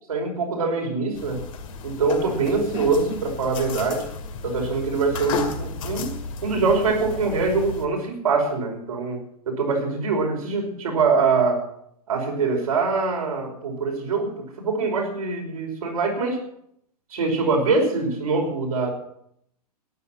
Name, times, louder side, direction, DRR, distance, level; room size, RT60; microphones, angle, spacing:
voice 1, 0.1-1.4 1.8-4.0 4.4-6.1 6.4-9.2 9.5-11.6 12.1-14.3 14.6-16.4 17.1-18.9, right 4 dB, 65° right, 1 dB, 5.3 m, -23 dB
sound 1, 1.2-7.9, left 4 dB, 55° left, 2.3 m, -33 dB
15.0 x 11.0 x 7.3 m, 0.72 s
figure-of-eight pair, 100°, 20 cm